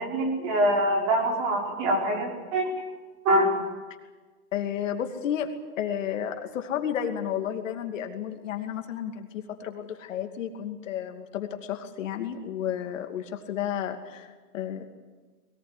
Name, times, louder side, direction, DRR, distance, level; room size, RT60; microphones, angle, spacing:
voice 1, 0.0-2.7 3.2-3.5, right 1 dB, 30° right, 1 dB, 5.0 m, -24 dB
voice 2, 4.5-5.5 5.8-14.3 14.5-14.8, left 9 dB, 55° left, 5 dB, 2.6 m, -32 dB
22.0 x 18.5 x 9.8 m, 1.3 s
hypercardioid pair, 165°, 47 cm